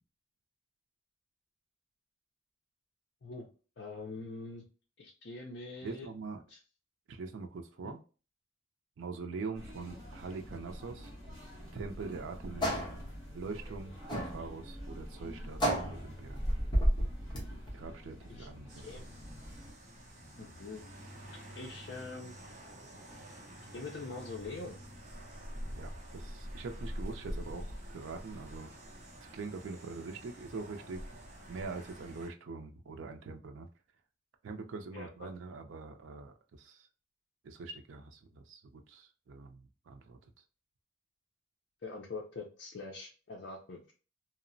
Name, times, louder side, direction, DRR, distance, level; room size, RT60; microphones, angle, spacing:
voice 1, 3.8-4.6 5.0-6.1 6.5-6.6 7.8-8.0 18.3-18.5 18.8-19.1 20.4-20.8 21.5-22.3 23.7-24.7 34.9-35.3 41.8-43.9, left 3 dB, 60° left, -2 dB, 0.5 m, -44 dB
voice 2, 5.8-6.4 7.1-8.0 9.0-11.1 11.7-12.8 13.3-16.4 17.7-19.0 25.8-28.7 29.2-31.0 31.5-33.7 34.4-36.9 37.4-40.2, right 4 dB, 90° right, 5 dB, 0.4 m, -43 dB
sound 1, 9.5-19.7, equal, ahead, 1.5 m, -49 dB
sound 2, 11.6-17.7, equal, 25° left, 0.9 m, -33 dB
sound 3, 18.7-32.3, equal, 40° right, 0.7 m, -46 dB
2.8 x 2.0 x 2.5 m, 0.36 s
head